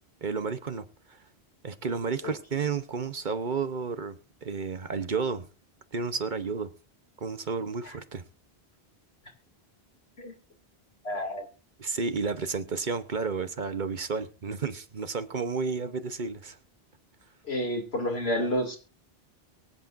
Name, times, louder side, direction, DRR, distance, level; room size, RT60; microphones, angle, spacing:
voice 1, 0.2-1.2 1.6-5.5 5.9-6.7 7.2-8.2 11.8-16.6, right 5 dB, 50° right, 1.0 m, -32 dB
voice 2, 11.0-11.5 17.4-18.8, equal, 75° left, 2.9 m, -30 dB
23.5 x 8.2 x 2.6 m
omnidirectional pair, 1.1 m